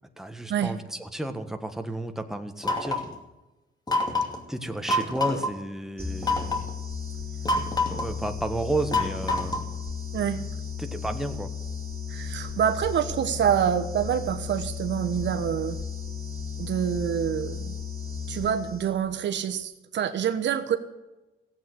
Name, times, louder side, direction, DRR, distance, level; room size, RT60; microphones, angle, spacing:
voice 1, 0.2-3.0 4.5-6.6 7.8-9.6 10.8-11.5, right 1 dB, ahead, 6 dB, 1.4 m, -32 dB
sound 1, 2.6-3.2 3.9-4.4 4.9-5.5 6.2-6.7 7.5-8.1 8.9-9.8, left 2 dB, 20° left, 2.6 m, -26 dB
sound 2, 6.0-19.1, left 6 dB, 30° right, 2.6 m, -35 dB
voice 2, 12.1-15.8 16.6-17.8 18.3-20.8, right 9 dB, 65° right, 8 dB, 1.1 m, -26 dB
15.5 x 8.5 x 7.9 m, 1.0 s
cardioid pair, 90°, 20 cm